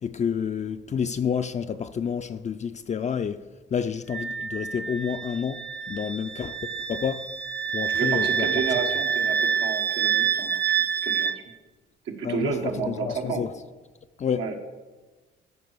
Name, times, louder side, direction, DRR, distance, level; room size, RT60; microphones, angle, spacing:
voice 1, 0.0-3.4 3.7-7.3 7.7-8.6 12.2-13.5 14.2-14.5, left 7 dB, 35° left, 0.4 m, -29 dB
Wind instrument woodwind instrument, 4.1-11.4, right 8 dB, 60° right, 0.6 m, -27 dB
voice 2, 7.9-10.6 11.0-11.3 12.0-13.4 14.4-14.6, right 5 dB, 85° right, 1.4 m, -31 dB
13.5 x 4.7 x 4.7 m
cardioid pair, 90°, 20 cm